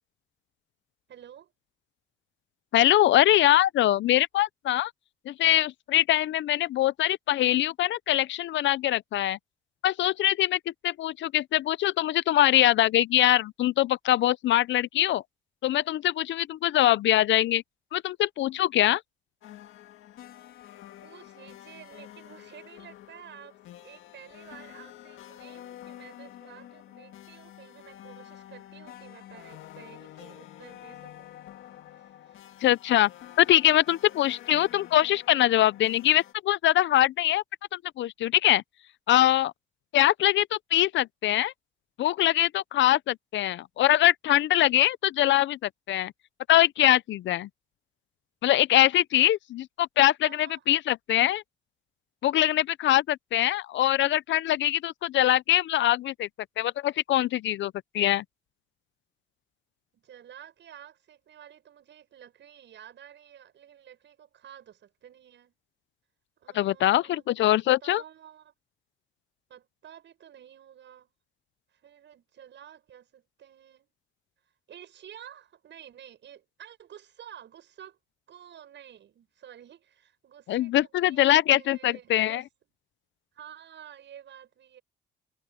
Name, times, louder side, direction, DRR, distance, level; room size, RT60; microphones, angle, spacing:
voice 1, 1.1-1.5 21.0-31.3 31.9-32.7 50.2-50.6 59.9-65.6 66.4-67.5 67.8-68.5 69.5-71.1 71.7-73.9 74.7-78.0 78.3-82.4 83.3-84.8, right 10 dB, 65° right, 7.6 m, -50 dB
voice 2, 2.7-4.9 5.3-9.4 9.8-15.2 15.6-17.6 17.9-19.0 32.6-33.1 33.4-37.4 37.7-38.6 39.1-39.5 39.9-41.5 42.0-46.1 46.5-47.5 48.4-51.4 52.2-56.3 56.6-58.2 66.5-68.0 80.5-82.4, left 13 dB, 70° left, 0.6 m, -23 dB
sound 1, 19.4-36.3, left 13 dB, 85° left, 1.8 m, -48 dB
cardioid pair, 90°, 20 cm